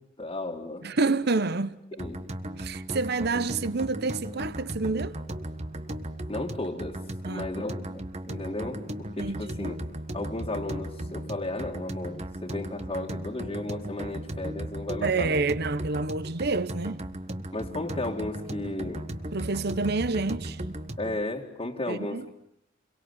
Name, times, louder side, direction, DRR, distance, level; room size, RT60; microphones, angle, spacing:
voice 1, 0.2-0.9 2.0-2.2 6.3-7.0 7.3-9.8 10.1-15.4 17.5-19.0 21.0-22.3, left 2 dB, 30° left, 2.2 m, -34 dB
voice 2, 0.8-1.8 2.6-5.2 7.2-7.7 9.2-9.7 15.0-17.0 19.3-20.6 21.9-22.2, right 3 dB, 60° right, 1.0 m, -28 dB
sound 1, 2.0-21.2, right 1 dB, 35° right, 1.5 m, -36 dB
29.0 x 23.5 x 8.2 m
head